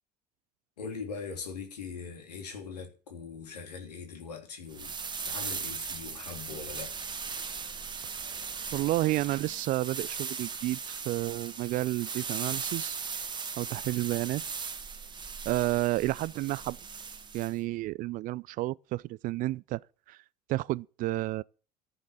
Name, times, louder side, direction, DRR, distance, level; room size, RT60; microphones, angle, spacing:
voice 1, 0.8-5.0 5.2-6.9, left 5 dB, 75° left, 3.6 m, -41 dB
sound 1, 4.7-17.5, right 5 dB, 20° right, 1.6 m, -38 dB
voice 2, 8.7-13.0 13.6-14.4 15.4-16.8 17.3-19.8 20.1-20.2 20.5-21.4, right 18 dB, 40° right, 0.5 m, -31 dB
14.0 x 7.3 x 7.0 m
figure-of-eight pair, 70°, 21 cm